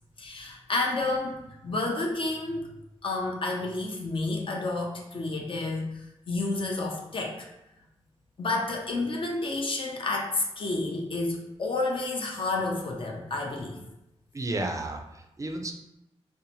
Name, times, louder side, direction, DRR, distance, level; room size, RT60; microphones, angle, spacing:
voice 1, 0.2-2.7 3.0-5.9 6.3-7.5 8.4-13.8, left 2 dB, 50° left, 0 dB, 0.6 m, -30 dB
voice 2, 14.3-15.7, right 2 dB, 30° right, 4 dB, 0.4 m, -32 dB
2.7 x 2.2 x 2.7 m, 0.87 s
cardioid pair, 60°, 11 cm